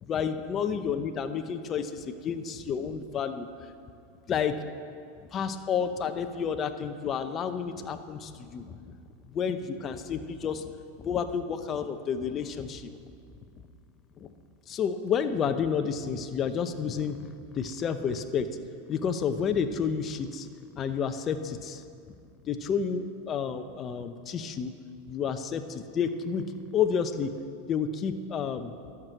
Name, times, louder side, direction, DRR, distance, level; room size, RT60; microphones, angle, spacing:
voice 1, 0.0-3.5 4.3-4.6 5.3-9.0 9.3-10.7 11.0-12.9 14.2-14.3 14.7-17.2 17.5-18.6 18.9-20.5 20.7-21.8 22.4-24.7 25.1-26.4 26.7-27.3 27.7-28.7, left 7 dB, 30° left, 8 dB, 0.7 m, -30 dB
12.0 x 6.1 x 7.7 m, 2.4 s
hypercardioid pair, 120°, 0 cm